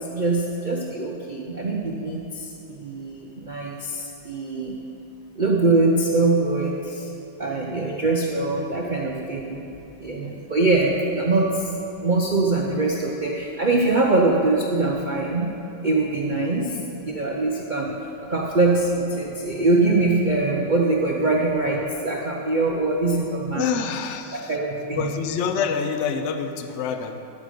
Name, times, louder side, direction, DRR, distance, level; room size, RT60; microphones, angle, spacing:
voice 1, 0.0-4.8 5.3-7.1 7.4-9.6 10.0-11.7 12.0-15.5 15.8-16.8 17.1-17.9 18.3-23.7 24.3-25.2, right 2 dB, 60° right, -1 dB, 0.4 m, -23 dB
voice 2, 23.6-24.5 24.9-27.2, left 6 dB, 85° left, 7 dB, 0.6 m, -27 dB
13.5 x 5.2 x 6.5 m, 2.9 s
omnidirectional pair, 2.0 m